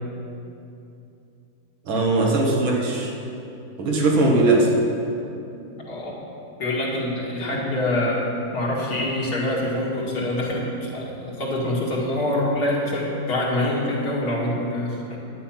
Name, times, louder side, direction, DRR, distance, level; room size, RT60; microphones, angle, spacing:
voice 1, 1.9-3.1 3.8-4.7 7.5-7.6, right 2 dB, 90° right, -1 dB, 2.3 m, -20 dB
voice 2, 5.8-6.2 6.6-8.2 8.5-15.2, left 1 dB, 55° left, -4 dB, 2.4 m, -25 dB
11.0 x 9.3 x 5.8 m, 2.7 s
omnidirectional pair, 2.1 m